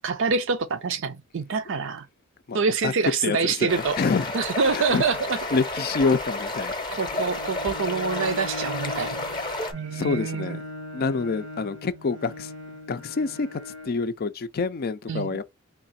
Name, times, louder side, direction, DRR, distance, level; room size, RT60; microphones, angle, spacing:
voice 1, 0.0-2.1 2.5-4.0 4.3-5.4 6.9-9.4 9.7-10.6 15.1-15.4, right 5 dB, 65° right, 0.6 m, -26 dB
voice 2, 3.2-4.3 4.7-5.0 5.5-6.7 9.9-10.6 10.9-12.5 12.9-15.4, left 4 dB, 45° left, 0.4 m, -27 dB
sound 1, 3.7-9.7, left 2 dB, 25° left, 0.8 m, -31 dB
Bowed string instrument, 7.0-14.0, left 1 dB, 80° right, 1.1 m, -40 dB
3.7 x 2.4 x 4.1 m
head